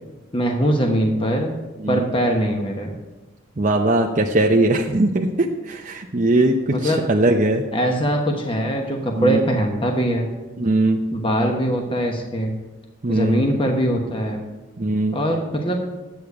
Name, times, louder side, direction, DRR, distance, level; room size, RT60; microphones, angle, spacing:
voice 1, 0.3-1.6 1.9-3.0 6.7-7.0 7.7-10.3 11.1-12.5 13.1-14.4 15.1-15.8, equal, 25° left, 2 dB, 1.1 m, -22 dB
voice 2, 3.6-7.6 9.2-9.4 10.6-11.0 13.0-13.4 14.8-15.2, right 2 dB, 40° right, 1 dB, 0.6 m, -20 dB
10.5 x 8.3 x 4.8 m, 1.2 s
head